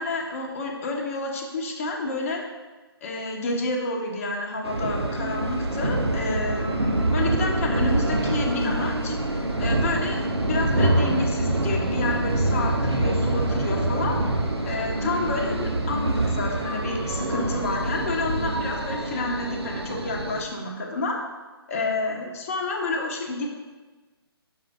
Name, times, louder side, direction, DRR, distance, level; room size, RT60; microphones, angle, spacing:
voice 1, 0.0-2.4 3.0-9.1 9.6-14.3 14.6-21.2 21.7-23.5, left 2 dB, 35° left, 1 dB, 0.9 m, -29 dB
sound 1, 4.6-20.4, right 1 dB, 85° right, 0.7 m, -25 dB
5.7 x 4.6 x 3.7 m, 1.3 s
figure-of-eight pair, 140°, 13 cm